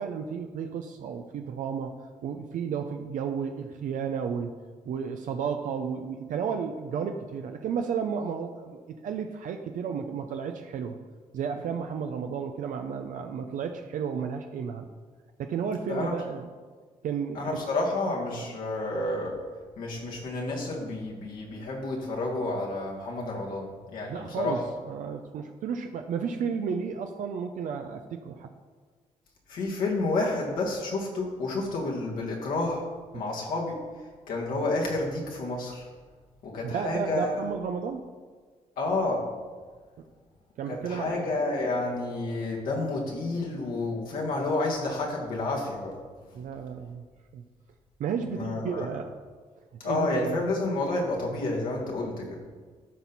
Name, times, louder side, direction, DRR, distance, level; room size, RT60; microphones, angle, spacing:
voice 1, 0.0-4.6 4.8-11.0 11.3-14.9 15.4-16.5 17.0-17.4 24.1-24.6 24.9-28.5 33.1-33.2 36.6-38.1 40.6-41.2 46.3-47.0 47.3-47.4 48.0-49.1 49.8-50.4, right 6 dB, 70° right, 5 dB, 0.6 m, -32 dB
voice 2, 17.3-19.4 19.8-24.6 29.5-32.9 33.1-33.8 34.3-35.9 36.4-37.4 38.8-39.3 40.7-45.9 48.3-48.9 49.8-52.4, left 2 dB, 80° left, -3 dB, 1.9 m, -30 dB
12.5 x 4.3 x 4.1 m, 1.5 s
supercardioid pair, 65°, 14 cm